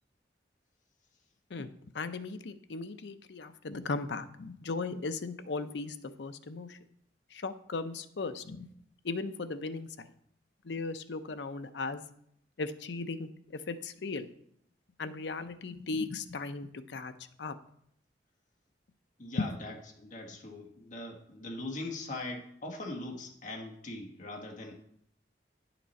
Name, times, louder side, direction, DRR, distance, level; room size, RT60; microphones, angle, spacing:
voice 1, 1.5-6.8 7.3-8.7 9.0-10.1 10.6-12.0 12.6-14.3 15.0-17.1 17.4-17.5 19.4-19.5, left 3 dB, 75° left, 10 dB, 0.6 m, -37 dB
voice 2, 19.2-24.8, left 2 dB, 45° left, 2 dB, 1.4 m, -41 dB
10.0 x 5.9 x 4.2 m, 0.70 s
head